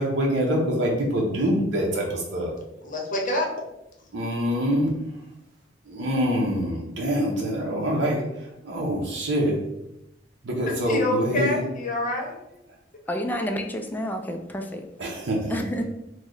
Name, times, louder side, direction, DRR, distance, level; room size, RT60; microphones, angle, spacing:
voice 1, 0.0-2.5 4.1-5.1 5.9-9.6 10.4-11.6 15.0-15.6, equal, 65° right, -3 dB, 0.7 m, -25 dB
voice 2, 2.8-3.5 10.9-12.4, left 1 dB, 45° left, 0 dB, 0.8 m, -26 dB
voice 3, 13.1-14.8 15.5-15.8, equal, 10° left, 4 dB, 0.3 m, -29 dB
3.1 x 2.1 x 3.7 m, 0.86 s
head